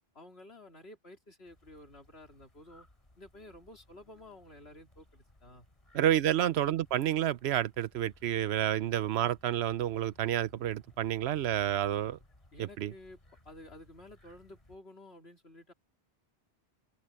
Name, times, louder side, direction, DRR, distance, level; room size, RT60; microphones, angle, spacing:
voice 1, 0.1-2.9 3.2-5.7 6.0-6.4 12.5-13.2 13.4-15.7, left 1 dB, 80° left, 4.0 m, -52 dB
sound 1, 1.4-14.8, left 1 dB, 30° left, 3.3 m, -61 dB
voice 2, 5.9-12.2 12.8-12.9, right 11 dB, 90° right, 0.9 m, -29 dB
omnidirectional pair, 1.1 m